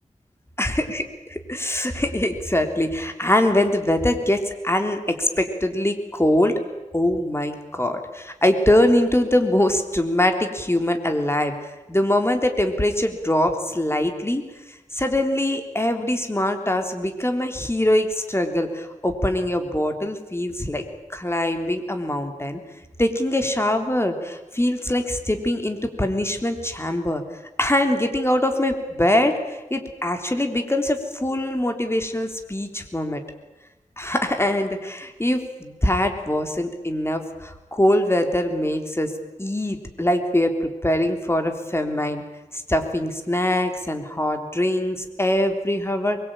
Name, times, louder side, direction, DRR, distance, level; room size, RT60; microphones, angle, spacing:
voice 1, 0.6-6.5 6.9-14.4 14.7-20.8 21.1-22.6 23.0-27.2 27.6-33.2 34.0-39.1 39.4-42.2 42.5-46.2, left 1 dB, 20° left, 5 dB, 3.5 m, -23 dB
23.5 x 22.0 x 9.1 m, 1.0 s
wide cardioid pair, 75°, 13 cm